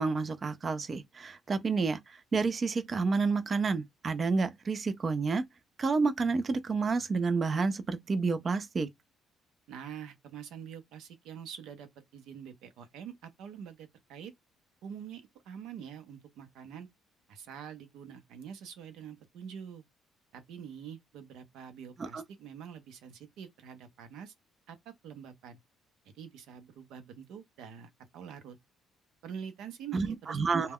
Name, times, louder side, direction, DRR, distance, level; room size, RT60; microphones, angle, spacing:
voice 1, 0.0-5.4 5.8-8.9 22.0-22.2 29.9-30.7, right 4 dB, 35° right, 0.3 m, -29 dB
voice 2, 9.7-14.3 14.8-16.9 17.3-19.8 20.3-24.3 24.7-25.6 26.1-28.6 29.2-30.7, right 8 dB, 85° right, 0.6 m, -46 dB
2.2 x 2.1 x 3.4 m
cardioid pair, 115°, 0 cm